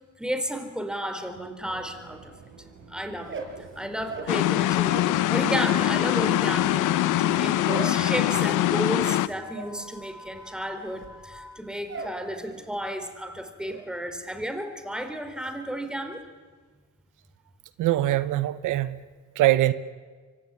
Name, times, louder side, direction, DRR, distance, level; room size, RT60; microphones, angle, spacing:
voice 1, 0.2-2.3 2.9-3.4 3.8-16.3, equal, 5° right, 7 dB, 4.2 m, -33 dB
Fixed-wing aircraft airplane, 1.6-8.7, right 5 dB, 70° right, 6.1 m, -49 dB
sound 1, 3.1-5.2 5.5-12.3 12.6-13.1 13.3-13.9, right 4 dB, 40° right, 6.0 m, -40 dB
sound 2, 4.3-9.3, left 14 dB, 90° left, 1.0 m, -23 dB
voice 2, 17.8-19.0 19.4-19.7, right 15 dB, 85° right, 14 dB, 1.1 m, -22 dB
24.5 x 24.5 x 9.9 m, 1.5 s
cardioid pair, 90°, 30 cm